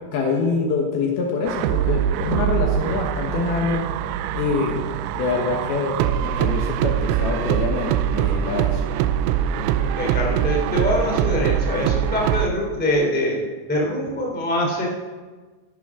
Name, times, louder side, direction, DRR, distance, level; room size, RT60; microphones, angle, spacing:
voice 1, 0.1-3.8 4.3-4.8 5.1-8.8, left 4 dB, 65° left, 0 dB, 2.9 m, -25 dB
sound 1, 1.5-12.5, right 10 dB, 90° right, 2.9 m, -23 dB
voice 2, 9.8-13.4 13.7-14.9, left 1 dB, 5° left, -2 dB, 2.3 m, -24 dB
18.0 x 11.0 x 3.7 m, 1.3 s
omnidirectional pair, 5.1 m